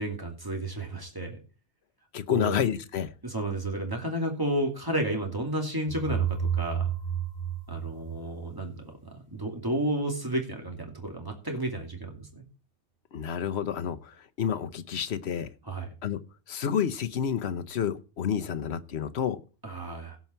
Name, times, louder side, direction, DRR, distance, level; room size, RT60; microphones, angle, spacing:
voice 1, 0.0-1.4 2.3-2.6 3.2-6.9 7.7-12.4 15.6-15.9 19.6-20.2, right 1 dB, 20° right, 2.6 m, -32 dB
voice 2, 2.1-3.1 13.1-15.5 16.0-16.2 16.5-19.4, left 8 dB, 70° left, 1.1 m, -29 dB
sound 1, 5.9-8.8, right 8 dB, 50° left, 3.3 m, -31 dB
17.0 x 5.7 x 4.5 m
omnidirectional pair, 1.2 m